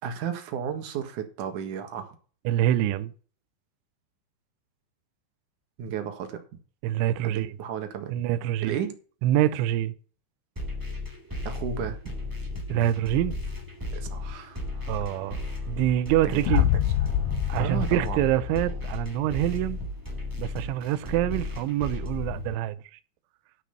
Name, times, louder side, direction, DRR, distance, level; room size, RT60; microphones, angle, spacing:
voice 1, 0.0-2.2 5.8-6.4 7.2-8.2 8.6-9.0 11.4-12.0 13.9-14.6 16.2-16.7 17.6-18.3, right 8 dB, 60° right, 2.3 m, -33 dB
voice 2, 2.5-3.1 6.8-7.5 8.1-8.8 9.2-9.9 12.7-13.4 14.9-15.4 15.7-16.7 17.5-19.8 20.4-22.8, right 13 dB, 85° right, 3.1 m, -25 dB
sound 1, 10.5-22.5, left 2 dB, 10° right, 0.9 m, -35 dB
Boom, 16.5-19.4, left 12 dB, 80° left, 2.6 m, -27 dB
12.0 x 6.1 x 5.7 m
omnidirectional pair, 5.5 m